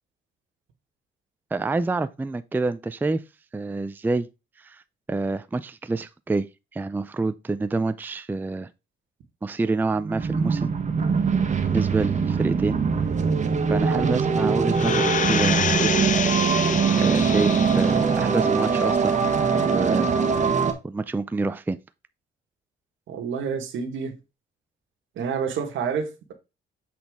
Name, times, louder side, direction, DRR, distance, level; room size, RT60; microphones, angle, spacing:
voice 1, 1.5-3.2 3.5-4.3 4.6-4.8 5.1-6.5 6.7-8.7 9.4-10.7 11.7-12.8 13.7-16.3 17.0-19.2 19.5-20.5 20.8-21.8, right 3 dB, 10° right, 0.4 m, -27 dB
sound 1, 10.0-20.7, right 5 dB, 35° right, 1.2 m, -22 dB
sound 2, 14.7-18.1 18.6-18.7, left 7 dB, 40° left, 0.6 m, -27 dB
voice 2, 23.1-24.2 25.1-26.3, right 6 dB, 75° right, 1.5 m, -29 dB
7.8 x 4.2 x 3.5 m
cardioid pair, 90°, 20 cm